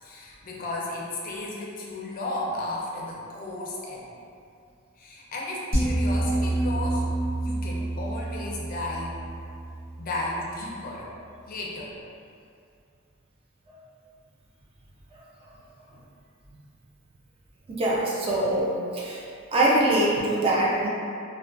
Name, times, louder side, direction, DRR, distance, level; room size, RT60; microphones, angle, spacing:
voice 1, 0.0-4.1 5.0-7.1 7.4-9.2 10.0-11.1 11.5-12.0, left 2 dB, 45° left, -3 dB, 0.4 m, -34 dB
sound 1, 5.7-10.9, right 1 dB, 45° right, 1.1 m, -28 dB
voice 2, 17.7-19.2 19.5-20.9, right 1 dB, 30° right, -5 dB, 0.4 m, -23 dB
2.3 x 2.2 x 2.4 m, 2.4 s
head